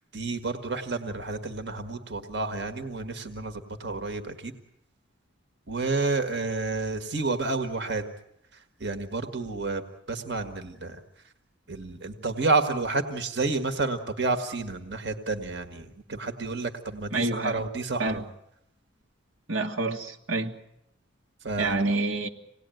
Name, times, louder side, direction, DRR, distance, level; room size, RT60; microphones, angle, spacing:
voice 1, 0.1-4.5 5.7-8.0 8.5-9.8 10.1-11.0 11.7-18.2 21.4-21.8, right 3 dB, 55° right, 1.7 m, -30 dB
voice 2, 17.1-17.6 18.0-18.2 19.5-20.5 21.6-22.3, right 2 dB, 80° right, 2.0 m, -27 dB
26.5 x 18.5 x 9.2 m
head